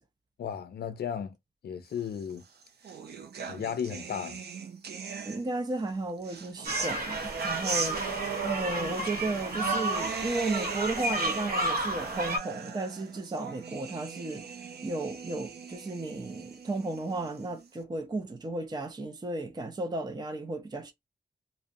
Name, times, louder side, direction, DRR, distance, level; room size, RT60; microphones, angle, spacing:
voice 1, 0.4-1.3 1.6-2.4 3.4-4.4, left 8 dB, 80° left, 0.4 m, -34 dB
sound 1, 2.3-5.7 6.2-17.7, right 6 dB, 85° right, 0.4 m, -39 dB
voice 2, 5.2-8.0 8.4-20.9, right 2 dB, 25° right, 0.4 m, -34 dB
sound 2, 6.7-12.4, right 1 dB, 65° right, 1.0 m, -32 dB
2.4 x 2.1 x 2.5 m
wide cardioid pair, 115°, 16 cm